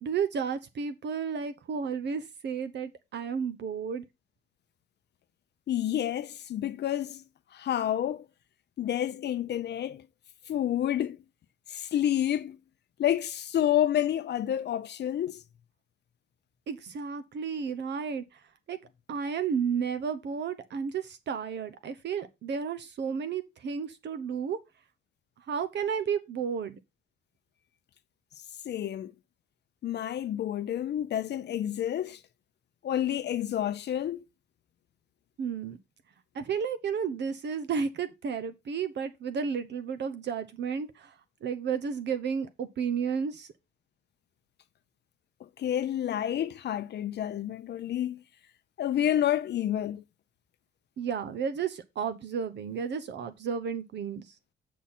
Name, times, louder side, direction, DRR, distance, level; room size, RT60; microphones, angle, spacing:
voice 1, 0.0-4.1 16.7-18.2 18.7-18.8 19.1-24.6 25.5-26.8 35.4-35.8 36.3-41.1 41.4-43.5 51.0-54.2, right 6 dB, 60° right, 0.9 m, -32 dB
voice 2, 5.7-7.2 7.5-8.3 8.8-10.1 10.5-11.2 11.7-12.6 13.0-15.4 28.6-29.1 29.8-32.2 32.8-34.2 45.6-48.2 48.8-50.0, left 11 dB, 60° left, 0.6 m, -29 dB
8.3 x 5.8 x 4.3 m
cardioid pair, 90°, 20 cm